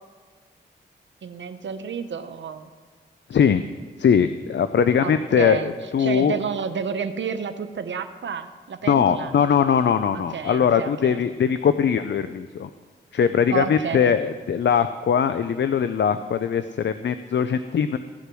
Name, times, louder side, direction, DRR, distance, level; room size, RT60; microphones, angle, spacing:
voice 1, 1.2-2.7 5.0-5.7 6.0-9.3 10.1-11.2 13.5-14.1, right 6 dB, 75° right, 9 dB, 0.9 m, -30 dB
voice 2, 3.3-3.6 4.0-6.3 8.9-12.7 13.1-18.0, left 7 dB, 70° left, 11 dB, 0.6 m, -21 dB
16.0 x 8.3 x 6.2 m, 1.5 s
cardioid pair, 45°, 20 cm